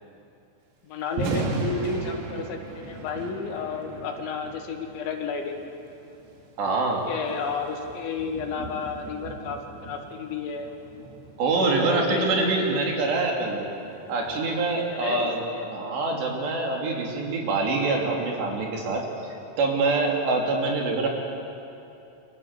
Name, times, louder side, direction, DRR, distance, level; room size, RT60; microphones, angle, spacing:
voice 1, 0.8-5.8 7.1-10.7 11.8-12.8 14.9-15.7, left 5 dB, 70° left, 3 dB, 4.2 m, -32 dB
Thunder, 1.0-15.2, right 3 dB, 85° right, 5.5 m, -38 dB
voice 2, 6.6-7.0 11.4-13.7 14.1-15.4 15.7-19.0 19.6-21.1, right 3 dB, 65° right, 0 dB, 4.9 m, -25 dB
28.5 x 24.5 x 8.2 m, 2.8 s
omnidirectional pair, 5.5 m